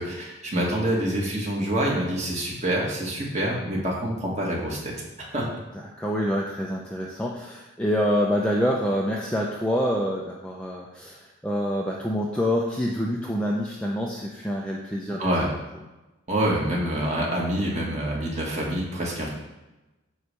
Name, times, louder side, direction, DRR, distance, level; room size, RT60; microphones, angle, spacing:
voice 1, 0.0-5.5 15.2-15.5 16.3-19.3, right 1 dB, 35° right, -3 dB, 1.9 m, -26 dB
voice 2, 5.7-15.3, equal, 5° left, -3 dB, 0.6 m, -26 dB
9.2 x 3.3 x 6.8 m, 1.0 s
head